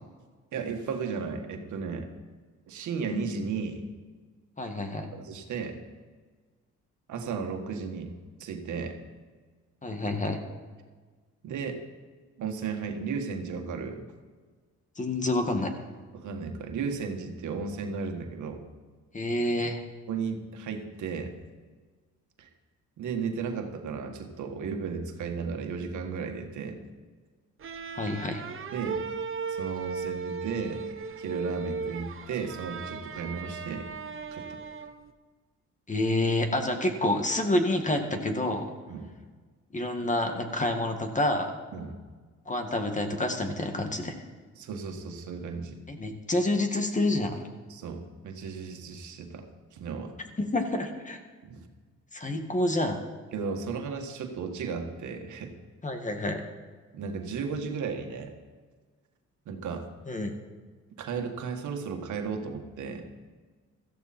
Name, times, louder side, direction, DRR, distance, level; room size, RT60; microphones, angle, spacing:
voice 1, 0.5-2.1 2.7-3.8 5.1-5.8 7.1-8.1 8.4-9.0 11.4-11.8 12.4-14.0 16.1-18.6 20.1-21.3 22.4-22.5 23.0-26.8 28.7-29.0 29.5-30.8 31.2-33.9 34.3-34.6 38.9-39.1 41.7-42.0 44.5-45.8 47.7-50.1 51.4-51.7 53.3-55.5 56.9-58.3 59.4-59.9 61.0-63.1, right 5 dB, 75° right, 4 dB, 1.8 m, -34 dB
voice 2, 4.6-5.1 9.8-10.4 15.0-15.7 19.1-19.8 27.9-28.4 35.9-38.7 39.7-41.5 42.5-44.1 45.9-47.5 50.4-51.2 52.1-53.0 55.8-56.4 60.1-60.3, left 1 dB, 25° left, 5 dB, 2.0 m, -28 dB
sound 1, 27.6-35.1, right 5 dB, 45° right, 1.1 m, -37 dB
16.5 x 14.0 x 4.4 m, 1.4 s
cardioid pair, 90°, 30 cm